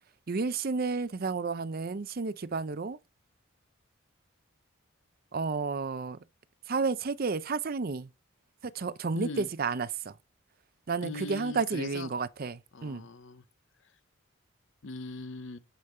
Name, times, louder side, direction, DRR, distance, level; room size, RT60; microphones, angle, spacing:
voice 1, 0.3-3.0 5.3-6.2 6.7-8.1 8.6-10.2 10.9-13.1, right 4 dB, 45° right, 0.5 m, -31 dB
voice 2, 9.2-9.5 11.0-12.1 12.7-13.4 13.8-13.9 14.8-15.6, left 3 dB, 60° left, 0.7 m, -40 dB
9.8 x 5.3 x 4.3 m
head